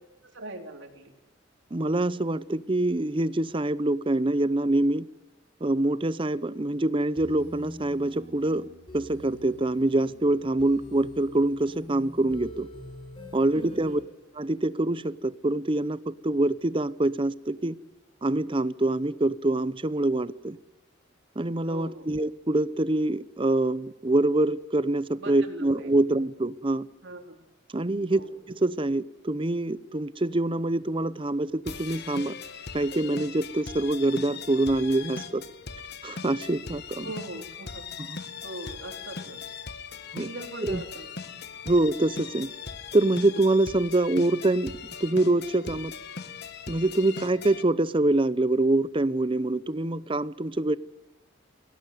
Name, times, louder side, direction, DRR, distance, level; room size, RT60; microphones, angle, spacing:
voice 1, 0.3-1.1 13.5-14.0 21.7-22.1 25.2-25.9 27.0-27.3 28.1-28.4 37.0-37.9 38.4-39.5 40.2-41.1, right 2 dB, 65° right, 4.1 m, -40 dB
voice 2, 1.7-5.1 5.6-8.7 8.9-12.7 13.3-14.0 14.4-17.7 18.2-20.6 21.4-26.9 27.7-28.2 28.5-32.3 32.7-35.4 36.0-37.1 38.1-38.2 40.1-40.3 40.6-40.8 41.7-42.5 42.9-45.9 46.7-50.8, right 2 dB, 25° right, 0.7 m, -25 dB
sound 1, 7.1-14.0, left 1 dB, 25° left, 6.2 m, -46 dB
sound 2, 31.6-47.6, left 5 dB, 55° left, 1.4 m, -40 dB
24.0 x 17.5 x 9.4 m
head